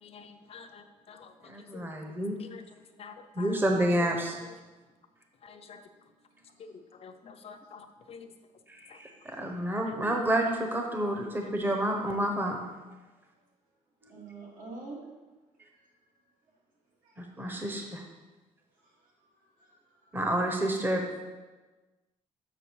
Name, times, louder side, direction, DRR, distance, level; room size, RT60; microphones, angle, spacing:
voice 1, 0.0-1.3 1.7-1.9 2.4-2.6 3.0-3.6 5.4-5.8 6.6-6.7 7.0-8.3 8.9-9.0 9.7-9.9, left 5 dB, 50° left, 7 dB, 0.6 m, -48 dB
voice 2, 1.5-2.4 3.4-4.4 8.7-12.6 14.0-14.1 17.2-18.0 20.1-21.0, right 1 dB, 15° right, 2 dB, 0.9 m, -29 dB
voice 3, 14.1-15.0 17.0-17.1 19.6-19.7, right 3 dB, 75° right, -4 dB, 2.5 m, -43 dB
6.9 x 5.9 x 4.6 m, 1.2 s
cardioid pair, 135°, 13 cm